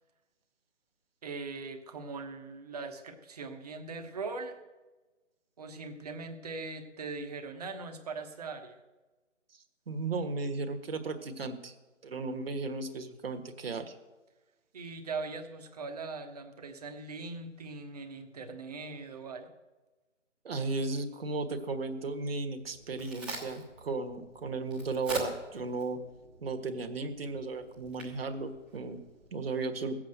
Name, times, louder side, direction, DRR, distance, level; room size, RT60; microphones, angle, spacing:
voice 1, 1.2-4.6 5.6-8.8 14.7-19.5, right 4 dB, 30° right, 6 dB, 1.2 m, -40 dB
voice 2, 9.9-11.7 12.0-13.9 20.4-26.1 26.4-30.0, right 3 dB, 50° right, 6 dB, 1.5 m, -35 dB
Crack, 22.6-29.5, right 2 dB, ahead, 1.1 m, -43 dB
16.5 x 7.8 x 7.8 m, 1.2 s
figure-of-eight pair, 150°, 38 cm